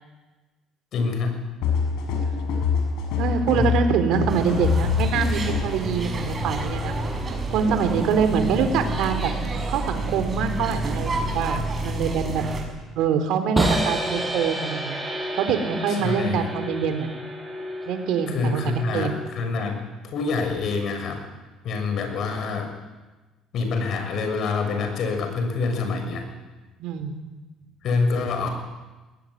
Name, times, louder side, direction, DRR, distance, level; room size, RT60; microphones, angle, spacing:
voice 1, 0.9-1.4 3.5-3.6 15.9-16.5 18.3-21.2 21.6-22.7 23.5-26.3 27.8-28.5, left 4 dB, 55° left, 5 dB, 6.4 m, -26 dB
sound 1, 1.6-5.8, left 5 dB, 80° left, 6.4 m, -24 dB
voice 2, 3.2-6.9 7.5-9.3 9.7-12.4 13.0-15.0 15.4-17.1 17.9-19.2 26.8-27.2, right 6 dB, 75° right, 8 dB, 3.8 m, -25 dB
sound 2, 4.3-12.6, right 2 dB, 25° right, 6.9 m, -29 dB
sound 3, 13.6-19.5, right 1 dB, 10° right, 6.4 m, -29 dB
21.5 x 18.5 x 9.9 m, 1.2 s
cardioid pair, 115°, 0 cm